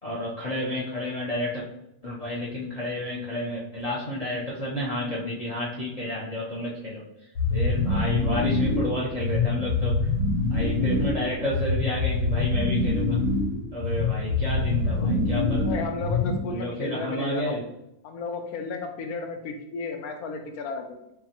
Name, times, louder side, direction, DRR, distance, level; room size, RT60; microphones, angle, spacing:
voice 1, 0.0-1.6 2.0-7.0 7.5-10.1 10.5-13.2 13.7-15.8 16.5-17.6, left 1 dB, 55° left, -5 dB, 0.4 m, -31 dB
sound 1, 7.3-16.6, left 3 dB, 90° left, 1.4 m, -25 dB
voice 2, 15.6-17.6 18.0-21.1, left 4 dB, 75° left, 5 dB, 1.0 m, -33 dB
5.5 x 2.2 x 2.9 m, 0.82 s
omnidirectional pair, 1.7 m